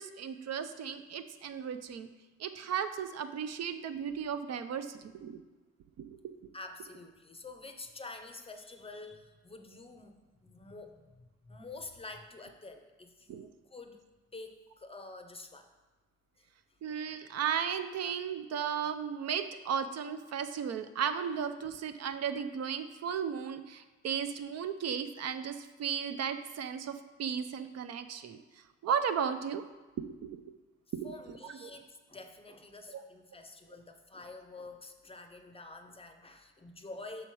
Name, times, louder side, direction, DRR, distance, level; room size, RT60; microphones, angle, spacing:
voice 1, 0.0-2.1 2.4-5.4 6.0-6.1 13.3-13.5 16.8-28.4 28.8-29.7 30.2-30.4 31.0-31.1 32.9-33.0, right 7 dB, 60° right, 9 dB, 0.5 m, -35 dB
voice 2, 6.5-14.0 14.3-15.7 16.4-16.8 31.0-37.3, left 3 dB, 20° left, 6 dB, 0.6 m, -48 dB
6.2 x 4.5 x 4.6 m, 1.2 s
cardioid pair, 90°, 30 cm